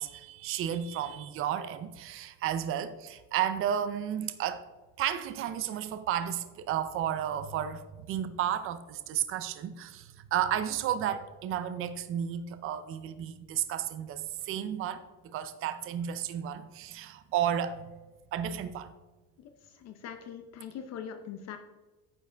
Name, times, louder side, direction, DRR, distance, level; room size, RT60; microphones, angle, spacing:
voice 1, 0.0-4.6 5.0-17.9 18.3-18.9, right 10 dB, 40° right, 0.5 m, -32 dB
voice 2, 19.7-21.6, left 8 dB, 50° left, 0.7 m, -42 dB
9.9 x 6.9 x 3.4 m
cardioid pair, 175°, 34 cm